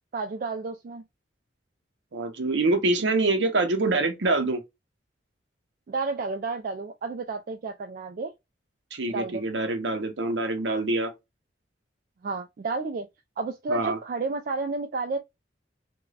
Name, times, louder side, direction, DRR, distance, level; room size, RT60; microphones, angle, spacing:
voice 1, 0.1-1.0 5.9-8.3 9.1-9.4 12.2-13.1 13.4-15.2, right 3 dB, 50° right, 0.3 m, -31 dB
voice 2, 2.1-4.6 8.9-11.1 13.7-14.0, right 2 dB, 75° right, 0.7 m, -25 dB
3.2 x 2.2 x 2.3 m
head